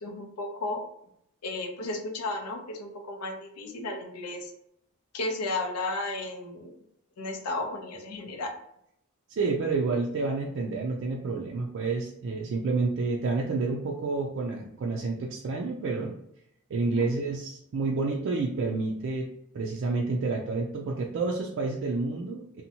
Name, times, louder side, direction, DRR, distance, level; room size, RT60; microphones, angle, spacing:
voice 1, 0.0-0.8 1.4-4.5 5.1-6.7 7.2-8.5 17.0-17.1, left 2 dB, 80° left, 3 dB, 0.5 m, -33 dB
voice 2, 9.4-16.1 16.7-19.3 19.5-22.6, right 3 dB, 55° right, -1 dB, 0.3 m, -29 dB
2.7 x 2.1 x 2.7 m, 0.75 s
head